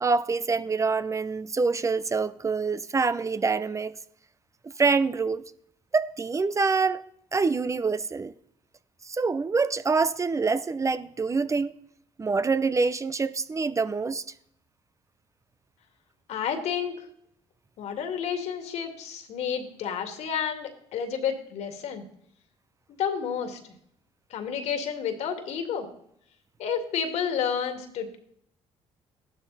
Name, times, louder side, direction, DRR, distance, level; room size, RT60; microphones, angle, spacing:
voice 1, 0.0-4.0 4.8-5.4 5.9-7.0 7.3-8.3 9.0-11.7 12.2-14.2, right 4 dB, 25° right, 0.7 m, -25 dB
voice 2, 16.3-17.1 17.8-22.1 23.0-23.6 24.3-25.9 26.6-28.2, left 7 dB, 70° left, 2.5 m, -30 dB
14.5 x 12.5 x 4.2 m
supercardioid pair, 80°, 12 cm